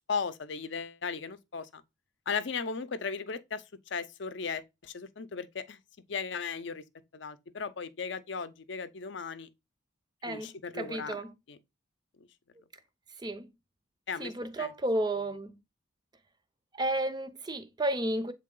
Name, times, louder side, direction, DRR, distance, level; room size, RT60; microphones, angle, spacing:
voice 1, 0.1-1.8 2.3-3.6 3.9-5.8 6.1-6.8 7.1-9.5 10.2-11.2 11.5-11.6 12.2-12.3 14.1-14.3 14.6-14.7, left 5 dB, 60° left, 0.5 m, -36 dB
voice 2, 10.2-11.3 13.2-13.5 14.2-15.5 16.7-18.3, right 1 dB, 20° right, 0.4 m, -32 dB
7.5 x 3.4 x 3.8 m
head